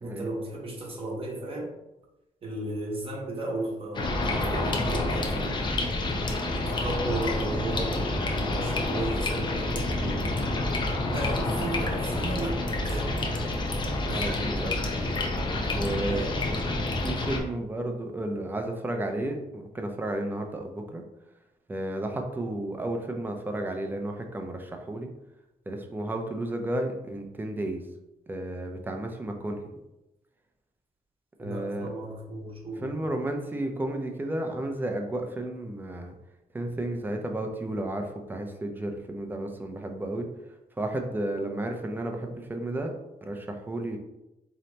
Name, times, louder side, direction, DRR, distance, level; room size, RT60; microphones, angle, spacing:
voice 1, 0.0-1.8 2.4-5.8 6.5-10.3 11.1-13.2 14.0-14.4 16.1-16.3 31.4-32.9, right 1 dB, 40° right, -1 dB, 0.9 m, -35 dB
sound 1, 3.9-17.4, left 2 dB, 30° left, 0.6 m, -28 dB
voice 2, 14.1-15.1 15.7-16.2 17.0-21.0 21.7-25.1 25.7-27.8 28.3-29.6 31.4-31.9 32.8-36.1 36.5-40.3 40.8-42.9 43.2-44.0, right 1 dB, 15° right, 3 dB, 0.4 m, -32 dB
4.0 x 2.8 x 3.2 m, 0.94 s
wide cardioid pair, 165°, 15 cm